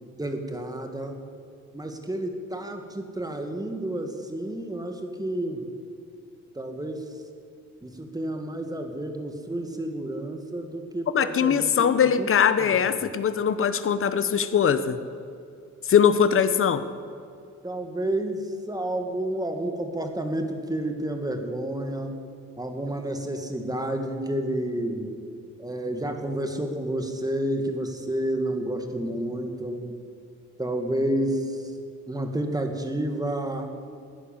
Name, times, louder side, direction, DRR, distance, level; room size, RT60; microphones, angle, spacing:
voice 1, 0.2-1.1 1.7-5.7 6.6-7.0 7.8-11.6 12.2-12.3 12.6-13.1 17.6-22.1 22.6-25.1 25.6-29.9 30.6-31.6 32.1-33.7, right 1 dB, 10° right, 5 dB, 2.1 m, -30 dB
voice 2, 11.1-15.0 15.8-16.8, left 7 dB, 45° left, 12 dB, 1.0 m, -21 dB
16.0 x 10.0 x 7.4 m, 2.4 s
cardioid pair, 90°, 30 cm